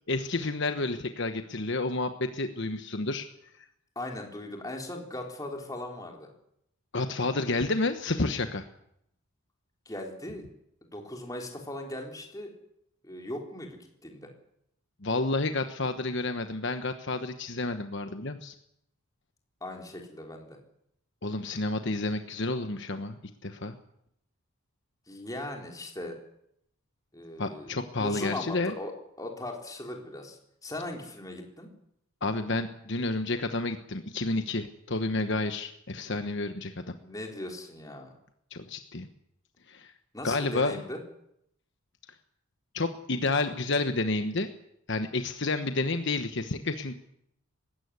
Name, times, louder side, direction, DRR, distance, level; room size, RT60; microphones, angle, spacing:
voice 1, 0.0-3.3 6.9-8.7 15.0-18.5 21.2-23.8 27.4-28.7 32.2-36.7 38.5-39.1 39.7-39.9 40.2-40.7 42.7-44.5 44.9-46.9, left 2 dB, 55° left, 8 dB, 1.2 m, -30 dB
voice 2, 4.0-6.3 9.9-10.5 10.9-12.5 13.0-14.3 19.6-20.6 25.1-26.2 27.1-27.7 28.0-28.9 29.2-31.7 37.0-38.1 40.1-41.0, left 1 dB, 15° left, 2 dB, 3.7 m, -38 dB
19.5 x 16.5 x 9.7 m, 0.76 s
head